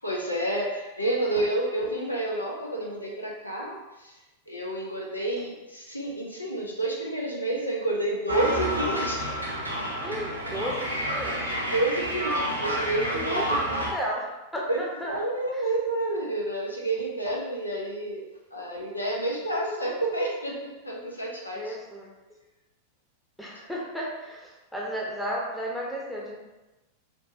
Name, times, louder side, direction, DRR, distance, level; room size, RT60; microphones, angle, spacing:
voice 1, 0.0-4.2 4.5-9.3 10.4-10.5 11.7-13.8 14.7-21.8, right 1 dB, 85° left, -2 dB, 0.6 m, -29 dB
sound 1, 8.3-13.9, equal, 85° right, 0.7 m, -29 dB
voice 2, 10.0-11.5 13.1-13.6 13.9-15.2 15.5-15.6 21.5-22.1 23.4-26.4, equal, 5° left, -3 dB, 0.8 m, -34 dB
4.4 x 2.6 x 2.7 m, 1.1 s
figure-of-eight pair, 90°, 0 cm